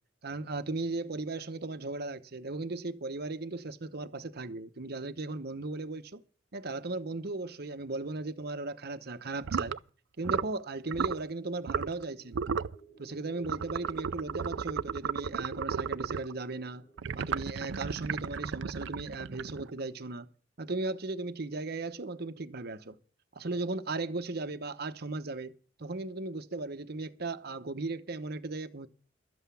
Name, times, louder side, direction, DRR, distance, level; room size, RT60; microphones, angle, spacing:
voice 1, 0.2-6.2 6.5-9.7 10.2-12.5 13.0-16.8 17.1-20.3 20.6-23.0 23.3-25.5 25.8-28.9, right 3 dB, 55° right, 1.0 m, -37 dB
sound 1, 9.4-9.8 10.2-10.6 10.9-11.2 11.7-12.0 12.3-12.8 13.4-16.3 17.0-19.8, right 6 dB, 75° right, 0.5 m, -34 dB
sound 2, 11.0-19.1, right 3 dB, 65° left, 2.1 m, -56 dB
12.5 x 8.1 x 6.9 m
head